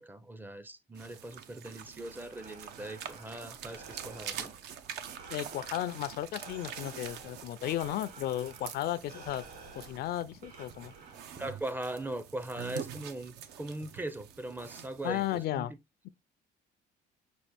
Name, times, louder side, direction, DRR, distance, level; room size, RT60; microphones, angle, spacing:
voice 1, 0.0-4.5 11.4-15.8, right 1 dB, 10° right, 0.4 m, -40 dB
sound 1, 0.9-15.5, right 9 dB, 80° right, 0.7 m, -46 dB
Breathing, 2.0-11.6, right 4 dB, 60° right, 2.1 m, -52 dB
voice 2, 5.3-9.4 9.7-10.9 15.0-15.7, left 13 dB, 65° left, 0.4 m, -34 dB
6.1 x 2.4 x 3.3 m
cardioid pair, 110°, 17 cm